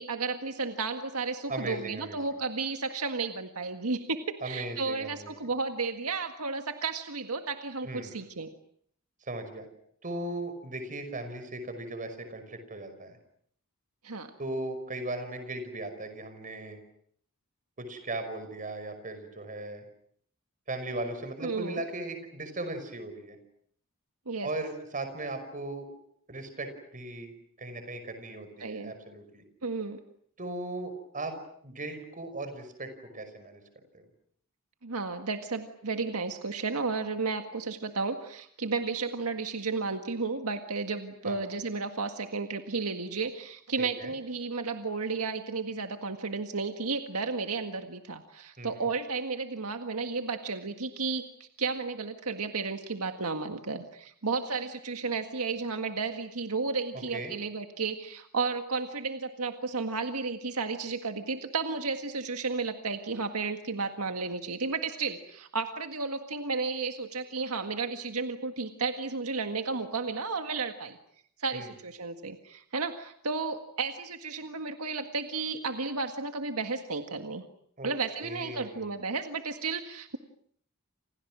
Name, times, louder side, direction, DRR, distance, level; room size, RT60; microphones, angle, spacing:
voice 1, 0.0-8.5 14.0-14.3 21.4-21.8 24.3-24.5 28.6-28.9 29.6-30.0 34.8-71.0 71.4-77.4 77.8-80.2, right 4 dB, 80° right, 6 dB, 1.8 m, -33 dB
voice 2, 1.5-2.2 4.4-5.3 7.8-8.1 9.3-9.7 10.0-13.2 14.4-16.8 17.8-19.8 20.7-23.4 24.4-25.9 26.3-27.3 27.6-29.4 30.4-31.3 31.6-33.6 33.9-34.0 41.2-41.4 44.0-44.1 48.6-48.8 56.9-57.3 71.5-71.7 77.8-77.9 78.2-78.9, right 2 dB, 35° right, 9 dB, 5.6 m, -37 dB
30.0 x 27.5 x 6.3 m, 0.64 s
head